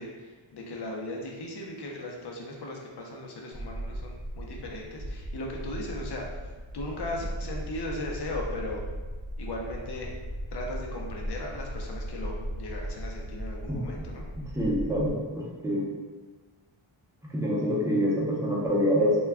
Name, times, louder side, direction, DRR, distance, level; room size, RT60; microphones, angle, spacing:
voice 1, 0.0-6.4 6.7-8.8 9.4-10.1 10.5-14.2, left 1 dB, 55° left, 0 dB, 0.6 m, -37 dB
sound 1, 3.5-15.1, equal, 35° right, 0.8 m, -37 dB
voice 2, 14.5-15.9 17.3-19.2, equal, 5° right, -5 dB, 0.5 m, -26 dB
2.2 x 2.2 x 3.4 m, 1.3 s
wide cardioid pair, 130°, 50 cm